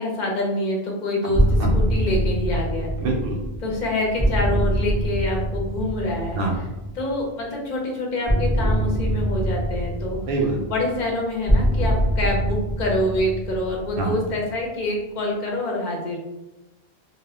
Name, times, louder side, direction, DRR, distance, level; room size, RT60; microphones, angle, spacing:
voice 1, 0.0-2.9 3.6-6.4 6.9-10.2 10.7-16.2, left 1 dB, 50° left, -1 dB, 0.7 m, -26 dB
sound 1, 1.3-7.1 8.3-14.5, equal, 10° left, 0.5 m, -24 dB
voice 2, 1.3-1.7 3.0-3.4 6.3-6.7 10.3-10.6 14.0-14.1, right 2 dB, 65° right, -1 dB, 0.7 m, -25 dB
2.1 x 2.1 x 3.5 m, 1.0 s
omnidirectional pair, 1.1 m